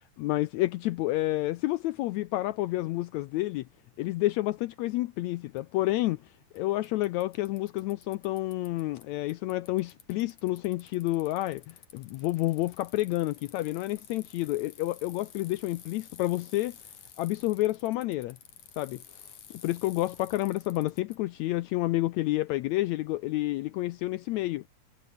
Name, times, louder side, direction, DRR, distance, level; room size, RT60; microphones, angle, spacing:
voice 1, 0.2-3.6 4.0-16.8 17.2-18.4 18.8-24.6, left 17 dB, 80° left, 1.6 m, -29 dB
Bicycle, 5.6-5.7 6.6-6.7 6.8-9.0 9.3-21.2, left 9 dB, 60° left, 3.5 m, -52 dB
omnidirectional pair, 3.8 m